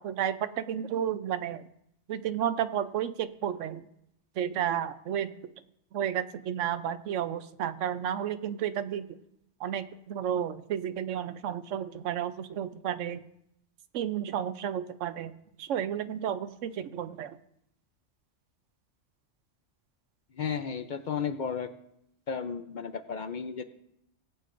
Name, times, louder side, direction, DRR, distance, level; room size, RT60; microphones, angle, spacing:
voice 1, 0.0-1.6 2.1-3.8 4.4-5.3 5.9-9.0 9.6-13.2 13.9-15.3 15.6-17.3, right 9 dB, 90° right, 12 dB, 1.0 m, -32 dB
voice 2, 20.3-21.7 22.3-23.6, left 6 dB, 50° left, 9 dB, 0.6 m, -33 dB
18.0 x 8.3 x 2.6 m, 0.77 s
omnidirectional pair, 1.2 m